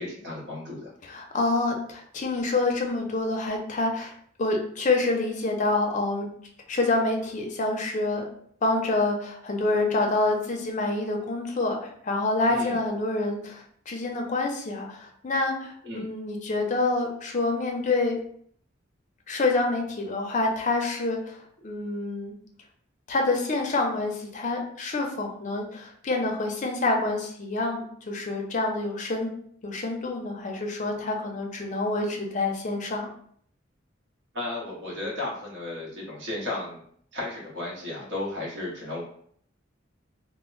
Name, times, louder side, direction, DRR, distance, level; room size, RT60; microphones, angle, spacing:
voice 1, 0.0-0.9 12.5-12.7 15.8-16.1 34.3-36.8 37.1-39.0, left 2 dB, 60° right, -5 dB, 0.9 m, -34 dB
voice 2, 1.0-4.1 4.4-6.3 6.7-8.2 8.6-18.2 19.3-22.3 23.1-29.3 29.6-33.1, left 2 dB, 40° left, 1 dB, 0.5 m, -27 dB
2.1 x 2.0 x 3.7 m, 0.62 s
head